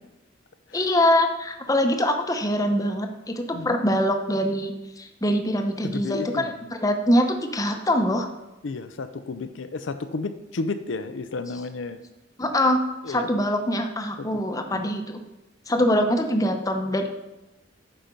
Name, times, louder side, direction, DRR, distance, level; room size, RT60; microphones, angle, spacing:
voice 1, 0.7-6.5 6.8-8.3 12.4-12.8 13.1-15.2 15.7-17.1, left 1 dB, 20° left, 5 dB, 0.8 m, -23 dB
voice 2, 5.8-6.5 8.6-12.0 13.0-13.3 14.2-14.9, left 3 dB, 80° left, 9 dB, 0.6 m, -32 dB
9.0 x 5.8 x 5.2 m, 0.98 s
head